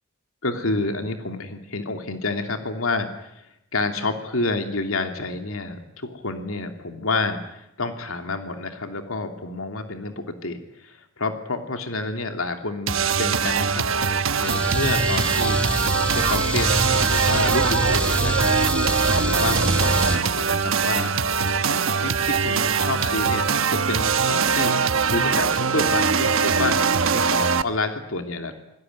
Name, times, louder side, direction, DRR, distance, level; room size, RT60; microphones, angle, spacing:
voice 1, 0.4-13.9 14.3-15.6 16.1-18.5 19.2-24.8 25.1-28.5, left 3 dB, 85° left, 5 dB, 2.9 m, -29 dB
sound 1, 12.9-27.6, right 5 dB, 75° right, 1.1 m, -22 dB
sound 2, 14.4-20.2, equal, 5° left, 2.2 m, -26 dB
27.0 x 20.5 x 9.4 m, 0.80 s
head